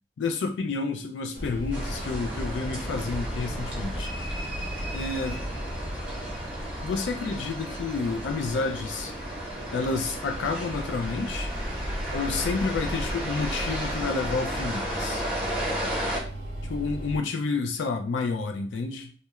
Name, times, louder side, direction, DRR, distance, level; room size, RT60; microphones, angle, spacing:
voice 1, 0.2-4.1 4.9-5.5 6.8-9.1 9.7-11.5 12.1-15.2 16.7-19.1, left 4 dB, 80° left, 4 dB, 0.4 m, -30 dB
sound 1, 1.3-17.2, equal, 45° left, 1.0 m, -36 dB
sound 2, 1.7-16.2, right 1 dB, 5° right, 0.9 m, -35 dB
2.3 x 2.1 x 2.9 m, 0.41 s
head